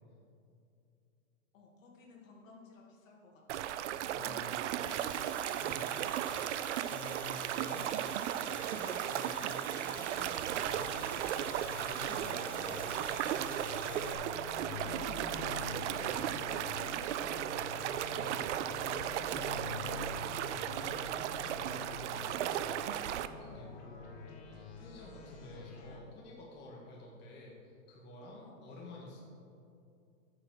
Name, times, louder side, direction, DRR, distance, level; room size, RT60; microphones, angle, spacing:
voice 1, 1.5-3.7 4.0-6.5 12.1-12.3 23.4-23.7 28.3-28.7, left 4 dB, 65° left, -1 dB, 2.5 m, -57 dB
sound 1, 3.5-23.3, right 11 dB, 60° right, 0.5 m, -36 dB
voice 2, 4.1-4.6 5.6-5.9 6.9-14.4 15.9-17.1 17.5-19.9 20.3-22.6 23.4-29.2, left 2 dB, 25° left, -3 dB, 1.7 m, -50 dB
Domestic sounds home sounds, 4.8-14.1, left 1 dB, 5° left, 1.1 m, -51 dB
sound 2, 10.5-26.0, left 4 dB, 45° left, 2.4 m, -47 dB
9.8 x 6.0 x 6.2 m, 2.5 s
hypercardioid pair, 145°, 41 cm